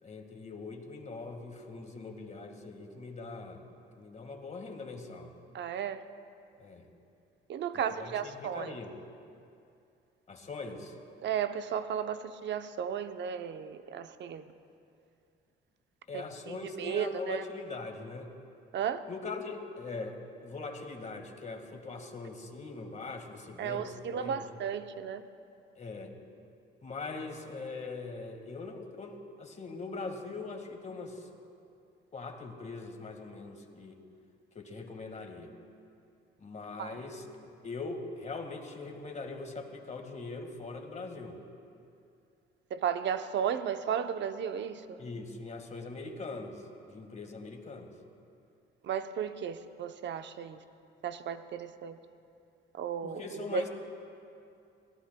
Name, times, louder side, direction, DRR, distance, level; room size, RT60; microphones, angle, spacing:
voice 1, 0.0-3.7 3.9-5.3 6.6-6.8 7.9-8.9 10.3-10.9 16.1-18.3 19.1-24.5 25.7-26.2 26.8-31.3 32.1-34.0 34.5-35.5 36.4-37.3 37.6-41.4 45.0-46.6 46.9-47.9 53.0-53.7, left 3 dB, 35° left, 4 dB, 1.7 m, -41 dB
voice 2, 5.5-6.1 7.5-8.8 11.2-14.5 16.1-17.4 18.7-19.0 23.6-25.3 36.8-37.0 42.7-45.0 48.8-50.6 51.0-52.0 52.7-53.2 53.5-53.7, right 8 dB, 65° right, 10 dB, 0.7 m, -34 dB
24.5 x 17.0 x 2.2 m, 2.6 s
cardioid pair, 90°, 20 cm